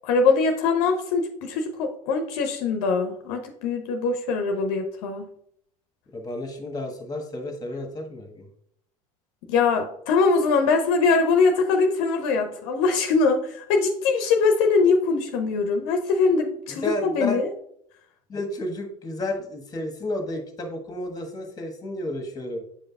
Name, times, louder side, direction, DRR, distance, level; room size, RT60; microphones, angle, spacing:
voice 1, 0.0-5.3 9.5-17.5, left 4 dB, 65° left, 5 dB, 0.8 m, -22 dB
voice 2, 6.1-8.5 16.7-17.4 18.3-22.6, left 1 dB, 20° left, 4 dB, 1.4 m, -31 dB
7.9 x 5.2 x 2.3 m, 0.69 s
hypercardioid pair, 70°, 18 cm